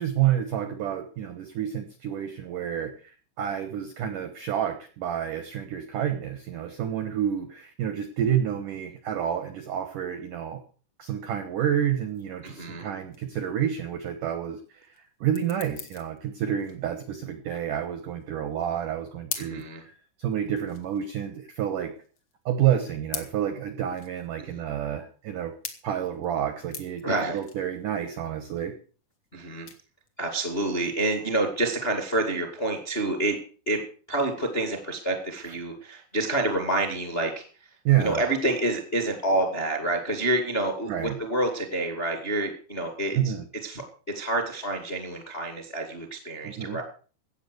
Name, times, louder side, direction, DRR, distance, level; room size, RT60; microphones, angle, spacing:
voice 1, 0.0-3.1 3.4-10.6 11.0-14.8 15.2-19.9 20.2-21.9 22.5-25.5 25.8-28.7 37.9-38.2 40.9-41.2 43.1-43.4 46.4-46.8, right 10 dB, 80° right, 9 dB, 1.8 m, -29 dB
sound 1, 12.1-31.9, left 6 dB, 85° left, 1.1 m, -44 dB
voice 2, 12.4-12.9 19.3-19.8 24.4-24.6 27.0-27.4 29.3-29.7 30.2-33.4 33.6-33.8 34.1-37.4 38.0-43.3 43.6-43.8 44.1-46.8, right 2 dB, 30° left, 4 dB, 1.0 m, -28 dB
15.0 x 8.8 x 6.7 m, 0.40 s
omnidirectional pair, 5.5 m